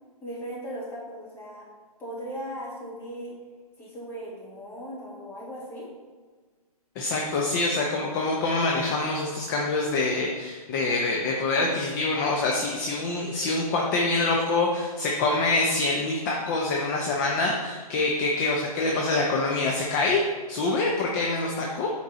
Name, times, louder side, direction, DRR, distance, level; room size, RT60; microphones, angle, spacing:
voice 1, 0.2-1.6 2.0-3.4 3.8-5.9, equal, 10° left, -6 dB, 2.2 m, -37 dB
voice 2, 7.0-20.2 20.5-21.9, left 3 dB, 30° left, -1 dB, 0.8 m, -25 dB
8.6 x 4.5 x 4.2 m, 1.4 s
hypercardioid pair, 145°, 20 cm